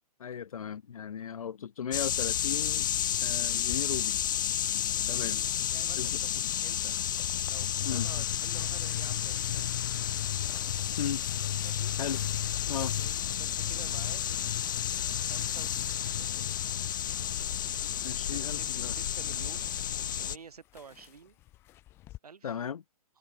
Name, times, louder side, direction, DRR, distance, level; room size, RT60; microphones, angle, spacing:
voice 1, 0.2-2.9 3.2-4.2 5.1-5.4 6.0-6.2 7.8-8.1 11.0-11.3 12.0-12.2 12.7-12.9 18.0-18.9 22.4-22.8, left 8 dB, 70° left, 0.7 m, -36 dB
sound 1, 1.9-20.4, left 10 dB, 35° left, 1.0 m, -31 dB
sound 2, 3.5-22.2, left 15 dB, 10° left, 2.6 m, -56 dB
voice 2, 5.7-7.0 7.5-9.9 11.6-12.0 12.8-14.2 15.2-15.8 16.2-16.7 18.2-21.4 22.2-22.6, right 6 dB, 85° right, 4.6 m, -50 dB
sound 3, 13.1-20.2, right 32 dB, 15° right, 1.2 m, -55 dB
hypercardioid pair, 175°, 19 cm